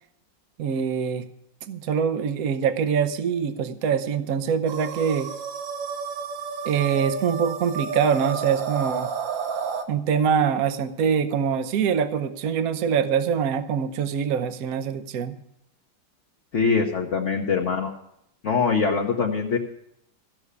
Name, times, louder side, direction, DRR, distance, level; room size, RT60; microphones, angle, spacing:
voice 1, 0.6-1.2 1.7-5.3 6.6-9.1 9.9-15.4, right 7 dB, 60° right, 10 dB, 1.2 m, -24 dB
sound 1, 4.7-9.8, right 5 dB, 85° right, 1.8 m, -31 dB
voice 2, 16.5-17.9 18.4-19.6, left 5 dB, 45° left, -1 dB, 1.3 m, -23 dB
15.5 x 6.3 x 8.1 m, 0.77 s
omnidirectional pair, 2.0 m